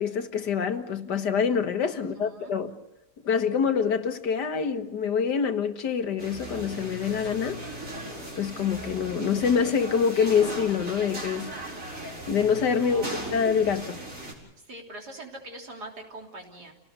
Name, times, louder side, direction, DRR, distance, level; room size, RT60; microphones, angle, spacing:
voice 1, 0.0-2.8 3.2-7.6 8.4-11.5 12.3-13.0 13.3-14.0, left 6 dB, 80° left, 2.0 m, -26 dB
voice 2, 2.2-2.5 12.8-13.4 14.7-16.7, right 1 dB, 70° right, 4.0 m, -43 dB
sound 1, 6.2-14.3, right 1 dB, 50° right, 5.2 m, -37 dB
29.5 x 18.5 x 6.8 m
omnidirectional pair, 1.8 m